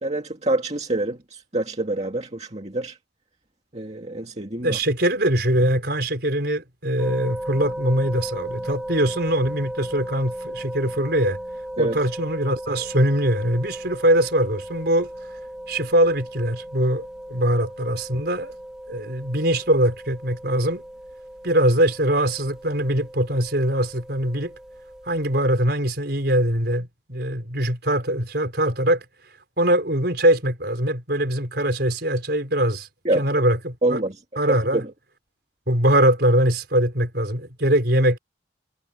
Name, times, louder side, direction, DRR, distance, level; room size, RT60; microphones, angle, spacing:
voice 1, 0.0-3.0 3.7-4.8 11.8-12.0 33.1-33.4 33.8-34.1 34.7-34.9, right 2 dB, 35° right, 2.1 m, -26 dB
voice 2, 4.6-11.4 11.8-15.1 15.7-18.5 18.9-20.8 21.4-24.5 25.1-29.0 29.6-32.9 33.1-34.0 34.4-34.8 35.7-38.2, right 1 dB, 60° right, 5.2 m, -22 dB
sound 1, 7.0-25.4, right 1 dB, 5° right, 2.3 m, -36 dB
head